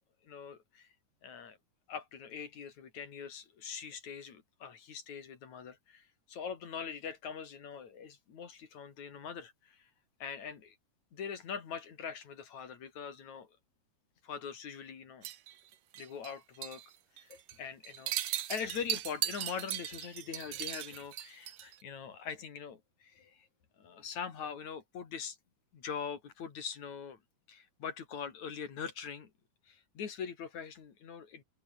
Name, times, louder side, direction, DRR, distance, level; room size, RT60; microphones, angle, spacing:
voice 1, 0.2-0.9 1.2-1.6 1.9-9.9 10.2-10.8 11.1-13.5 14.2-15.3 16.0-16.8 17.2-23.5 23.8-25.4 25.7-27.2 27.5-29.3 29.7-31.4, left 7 dB, 60° left, 3.9 m, -43 dB
sound 1, 15.2-16.3 16.6-16.9 17.2-17.5 17.8-21.8, right 12 dB, 75° right, 2.9 m, -38 dB
omnidirectional pair, 3.9 m